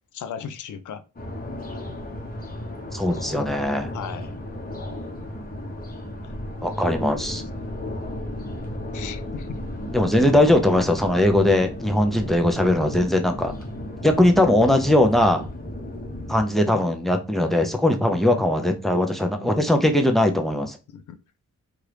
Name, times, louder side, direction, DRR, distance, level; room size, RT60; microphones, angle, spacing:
voice 1, 0.1-1.0 3.9-4.3 6.2-6.3 8.9-9.6 19.4-19.8 20.9-21.2, left 7 dB, 75° left, 0.5 m, -36 dB
sound 1, 1.2-16.4, left 1 dB, 30° left, 0.9 m, -34 dB
voice 2, 2.9-3.9 6.6-7.4 9.9-13.5 14.0-15.5 16.3-20.8, left 1 dB, ahead, 0.5 m, -20 dB
2.9 x 2.5 x 3.3 m
cardioid pair, 85°, 31 cm